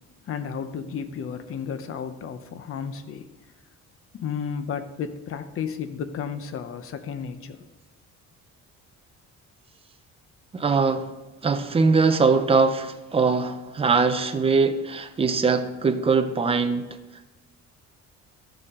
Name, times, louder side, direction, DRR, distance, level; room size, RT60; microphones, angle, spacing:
voice 1, 0.3-3.3 4.1-7.6, left 7 dB, 45° left, 0.8 m, -33 dB
voice 2, 10.5-11.1 11.4-17.0, right 4 dB, 20° right, 0.6 m, -22 dB
14.5 x 6.9 x 3.7 m
cardioid pair, 170°, 31 cm